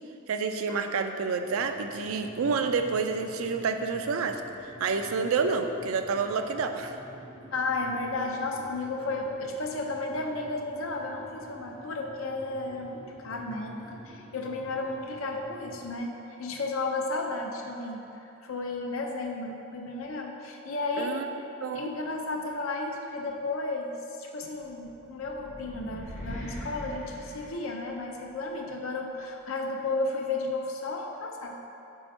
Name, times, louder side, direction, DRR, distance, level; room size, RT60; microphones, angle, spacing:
voice 1, 0.3-7.0 21.0-21.3 21.6-21.9, right 5 dB, 85° right, 6 dB, 0.4 m, -29 dB
sound 1, 1.5-15.9, equal, 30° right, 0.7 m, -49 dB
voice 2, 7.5-21.3 21.7-23.9 24.2-31.5, left 2 dB, 80° left, 1 dB, 0.7 m, -33 dB
sound 2, 24.8-28.3, equal, 40° left, 1.1 m, -41 dB
4.6 x 4.2 x 5.3 m, 2.8 s
head